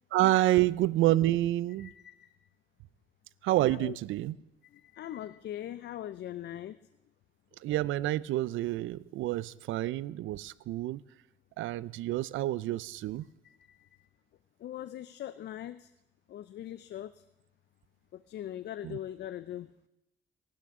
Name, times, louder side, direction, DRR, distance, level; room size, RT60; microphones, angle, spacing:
voice 1, 0.1-1.9 3.4-4.3 7.6-11.0 11.6-13.3 18.8-19.0, right 15 dB, 80° right, 20 dB, 0.4 m, -28 dB
voice 2, 1.8-2.3 3.7-4.0 4.6-6.8 13.4-14.1 14.6-15.9 16.3-17.2 18.1-19.7, left 12 dB, 60° left, 14 dB, 0.4 m, -41 dB
22.5 x 11.5 x 3.6 m, 0.91 s
cardioid pair, 90°, 20 cm